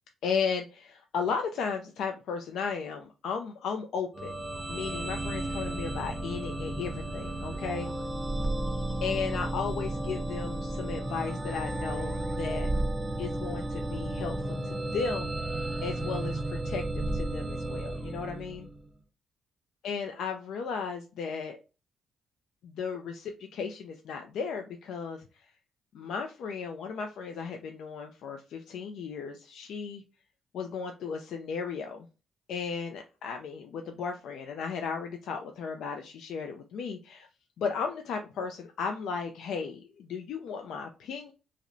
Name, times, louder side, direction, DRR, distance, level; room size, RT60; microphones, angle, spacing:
voice 1, 0.2-4.3 4.7-7.9 9.0-12.7 13.2-18.7 19.8-21.6 22.6-25.2 25.9-30.0 30.5-32.1 32.5-37.3 37.6-41.3, left 6 dB, 75° left, 4 dB, 0.4 m, -35 dB
sound 1, 4.1-18.9, right 1 dB, 20° right, 0.6 m, -33 dB
4.8 x 2.1 x 2.6 m, 0.32 s
cardioid pair, 90°, 0 cm